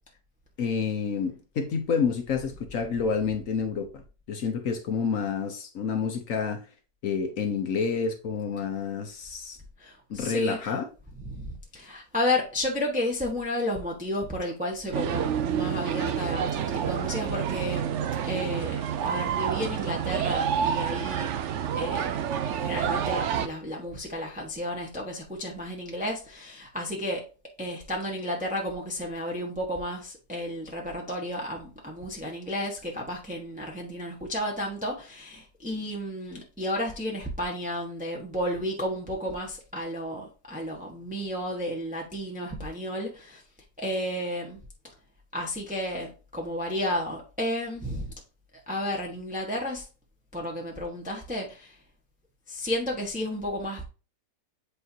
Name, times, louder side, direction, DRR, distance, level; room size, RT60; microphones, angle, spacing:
voice 1, 0.6-3.9 4.3-6.6 7.0-9.6 10.1-10.9, left 6 dB, 55° left, 1.1 m, -29 dB
voice 2, 9.8-10.7 11.2-18.0 18.2-21.3 21.8-22.1 22.6-27.2 27.6-43.4 43.8-44.6 45.3-48.1 48.7-49.9 50.3-51.8 52.5-53.9, left 1 dB, 5° right, 1.0 m, -32 dB
sound 1, 14.9-23.5, right 8 dB, 85° right, 0.6 m, -28 dB
8.2 x 4.5 x 2.7 m
omnidirectional pair, 1.9 m